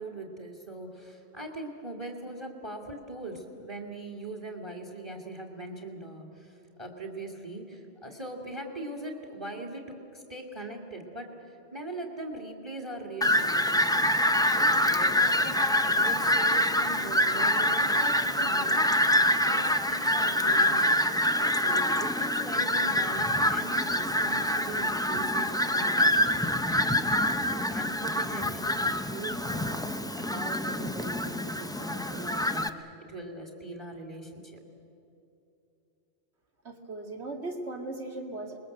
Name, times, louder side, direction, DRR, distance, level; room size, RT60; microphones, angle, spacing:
voice 1, 0.0-34.6, right 2 dB, 20° right, 2 dB, 2.1 m, -41 dB
Fowl, 13.2-32.7, left 1 dB, 5° left, 0.4 m, -26 dB
voice 2, 36.6-38.6, right 2 dB, 60° right, 2 dB, 2.5 m, -37 dB
27.0 x 21.0 x 7.7 m, 2.8 s
omnidirectional pair, 1.3 m